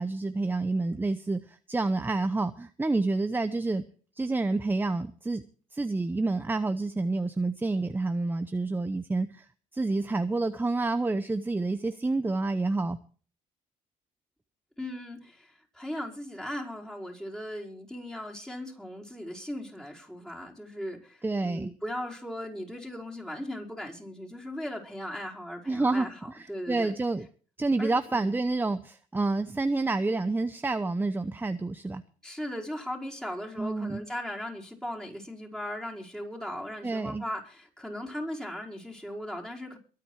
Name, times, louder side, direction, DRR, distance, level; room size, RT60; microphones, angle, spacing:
voice 1, 0.0-3.8 4.2-5.4 5.7-9.4 9.7-13.0 21.2-21.7 25.7-27.3 27.6-32.0 33.6-34.0 36.8-37.2, right 3 dB, 15° right, 11 dB, 0.8 m, -28 dB
voice 2, 14.8-26.9 27.8-28.4 32.2-39.8, left 1 dB, 5° left, -2 dB, 5.0 m, -38 dB
23.0 x 8.6 x 4.7 m, 0.42 s
cardioid pair, 105°, 15 cm